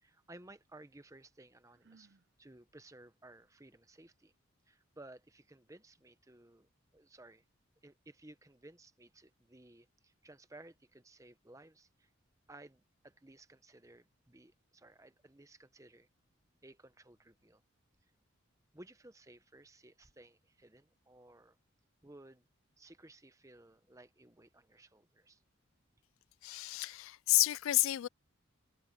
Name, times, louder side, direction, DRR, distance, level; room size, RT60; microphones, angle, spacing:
voice 1, 0.0-4.3 4.7-7.4 7.8-12.1 12.5-16.1 16.6-17.6 18.7-21.6 22.0-22.4 22.8-25.4, right 2 dB, 15° right, 0.8 m, -57 dB
Sigh, 1.7-2.3, right 4 dB, 50° right, 0.6 m, -64 dB
voice 2, 26.4-28.1, left 18 dB, 70° left, 0.3 m, -30 dB
head